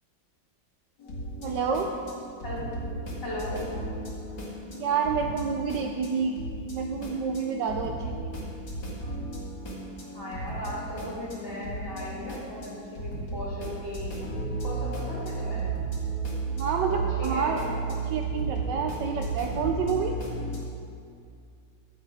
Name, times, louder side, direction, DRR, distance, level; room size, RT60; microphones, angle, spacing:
sound 1, 1.0-20.6, right 3 dB, 60° left, 2.5 m, -34 dB
voice 1, 1.4-1.9 4.7-6.4 6.7-8.3 16.4-17.6 18.0-20.2, right 6 dB, 70° right, 3 dB, 1.1 m, -29 dB
voice 2, 3.2-3.7 10.1-14.2 14.6-15.6 16.9-17.6, left 1 dB, 30° left, -7 dB, 2.9 m, -37 dB
12.0 x 7.7 x 4.9 m, 2.4 s
omnidirectional pair, 2.2 m